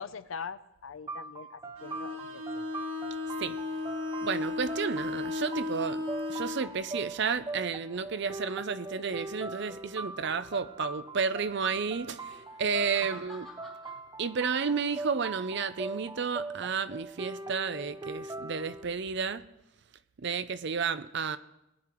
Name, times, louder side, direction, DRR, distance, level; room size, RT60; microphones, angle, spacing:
voice 1, 0.0-2.6, left 6 dB, 80° left, 13 dB, 0.7 m, -42 dB
sound 1, 1.1-18.8, right 3 dB, 20° right, 0.6 m, -41 dB
Bowed string instrument, 1.8-6.7, left 3 dB, 85° right, 1.6 m, -35 dB
voice 2, 4.2-6.0 6.3-13.5 14.2-19.4 20.2-21.4, right 5 dB, 60° right, 13 dB, 0.6 m, -32 dB
sound 2, 7.8-8.5 12.1-14.0 14.5-14.9, left 2 dB, ahead, 2.7 m, -53 dB
20.0 x 9.4 x 4.6 m, 0.90 s
head